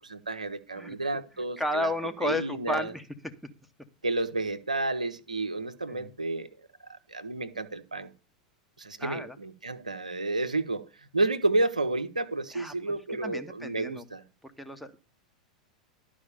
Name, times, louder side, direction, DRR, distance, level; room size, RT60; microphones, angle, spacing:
voice 1, 0.0-1.9 2.2-2.9 4.0-6.5 6.9-8.1 8.8-10.9 11.1-14.2, right 2 dB, 85° right, 0.8 m, -31 dB
voice 2, 1.6-3.1 5.9-6.1 9.0-9.4 12.5-12.7 13.2-14.0 14.6-15.0, left 1 dB, ahead, 1.1 m, -32 dB
12.0 x 4.9 x 7.0 m
figure-of-eight pair, 85°, 4 cm